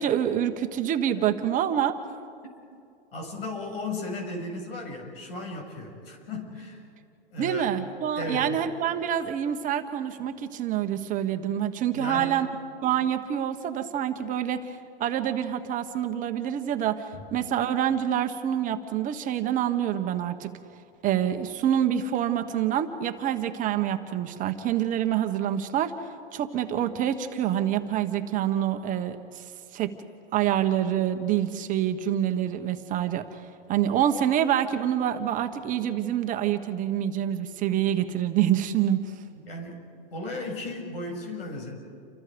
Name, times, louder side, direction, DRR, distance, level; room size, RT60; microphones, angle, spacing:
voice 1, 0.0-1.9 7.4-12.5 12.8-20.5 21.0-25.9 26.3-29.4 29.7-30.0 30.3-33.4 33.7-39.1, right 10 dB, 25° right, 6 dB, 1.3 m, -26 dB
voice 2, 3.1-6.8 7.3-7.7 8.2-8.6 11.9-12.5 17.1-17.3 39.3-41.7, left 2 dB, 80° left, 3 dB, 7.2 m, -35 dB
29.5 x 25.5 x 5.2 m, 2.4 s
hypercardioid pair, 140°, 29 cm